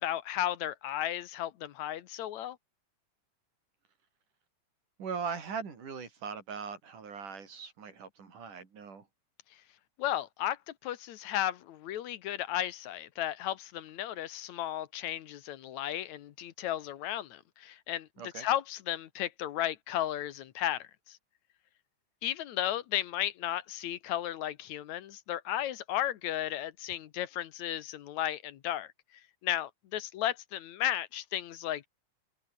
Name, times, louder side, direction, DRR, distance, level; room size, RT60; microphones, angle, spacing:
voice 1, 0.0-2.6 10.0-18.1 18.4-21.2 22.2-28.9 29.4-31.9, left 12 dB, 70° left, 2.3 m, -34 dB
voice 2, 5.0-9.1 18.2-18.5, right 5 dB, 90° right, 5.8 m, -40 dB
omnidirectional pair, 3.5 m